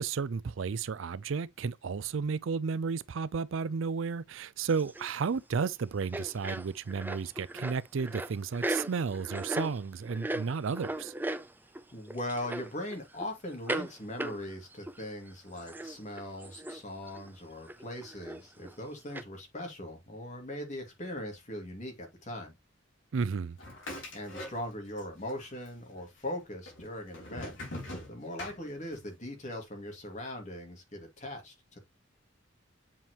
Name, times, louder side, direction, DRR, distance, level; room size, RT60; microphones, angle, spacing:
voice 1, 0.0-11.1 23.1-23.6, right 5 dB, 70° right, 0.4 m, -33 dB
sound 1, 4.7-5.3 5.6-5.7 6.0-11.8 12.1-13.3 13.7-13.9 14.2-15.0 15.3-15.4 15.6-16.8 17.1-17.3 17.7-18.7 19.1-19.2, right 1 dB, 10° right, 0.5 m, -37 dB
voice 2, 11.9-22.5 24.1-27.5 28.1-31.8, left 1 dB, 35° left, 2.3 m, -40 dB
sound 2, 23.6-25.0 25.3-26.0 26.7-29.1, left 1 dB, 65° left, 3.5 m, -42 dB
7.3 x 4.5 x 3.0 m
head